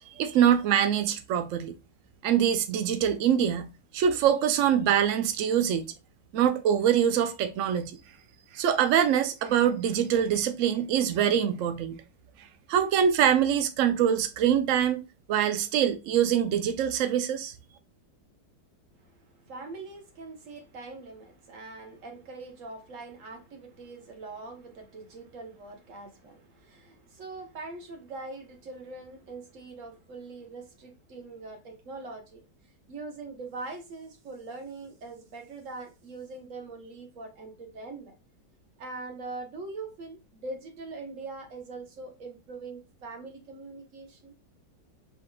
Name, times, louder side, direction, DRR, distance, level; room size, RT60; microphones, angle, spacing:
voice 1, 0.2-1.7 2.2-5.9 6.3-8.0 8.5-12.0 12.7-15.0 15.3-17.5, right 9 dB, 80° right, 0.7 m, -24 dB
voice 2, 19.0-32.4 32.9-38.1 38.8-44.3, right 3 dB, 50° right, 1.2 m, -42 dB
5.6 x 3.5 x 2.2 m
omnidirectional pair, 1.9 m